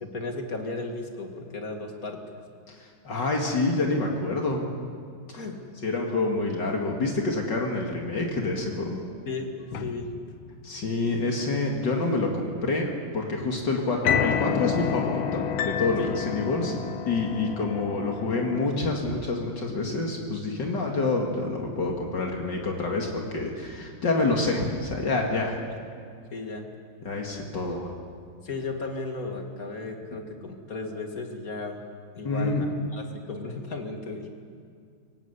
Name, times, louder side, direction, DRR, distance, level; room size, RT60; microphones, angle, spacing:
voice 1, 0.0-2.2 5.3-5.7 9.3-9.5 9.8-10.1 16.0-16.2 26.3-26.6 28.4-31.8 32.1-32.7 32.9-34.3, left 3 dB, 45° left, 3 dB, 2.5 m, -35 dB
voice 2, 2.7-4.7 5.8-9.0 10.6-16.7 17.1-25.6 27.0-27.9 32.2-32.7, left 3 dB, 65° left, 0 dB, 2.7 m, -27 dB
sound 1, 9.7-10.7 14.0-18.6, left 8 dB, 90° left, 1.7 m, -29 dB
24.0 x 18.0 x 8.2 m, 2.2 s
omnidirectional pair, 2.1 m